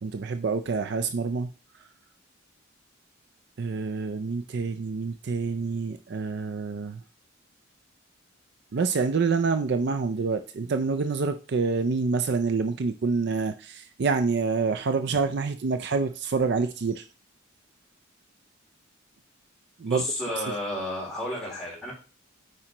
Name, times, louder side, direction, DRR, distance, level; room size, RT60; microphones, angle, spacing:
voice 1, 0.0-1.5 3.6-7.0 8.7-17.1 19.8-20.0, right 4 dB, 55° right, 9 dB, 0.4 m, -27 dB
voice 2, 19.8-21.9, left 1 dB, 5° left, -6 dB, 3.7 m, -32 dB
8.7 x 5.0 x 2.9 m, 0.35 s
head